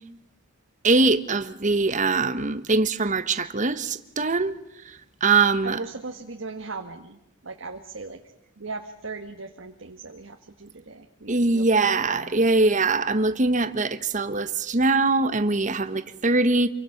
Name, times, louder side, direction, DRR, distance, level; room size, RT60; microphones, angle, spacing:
voice 1, 0.8-4.6 4.9-5.8 11.3-16.7, right 3 dB, 40° right, 1.1 m, -22 dB
voice 2, 5.6-8.2 8.6-12.3 12.7-12.8, right 3 dB, 75° right, 1.6 m, -38 dB
27.5 x 23.5 x 5.9 m
head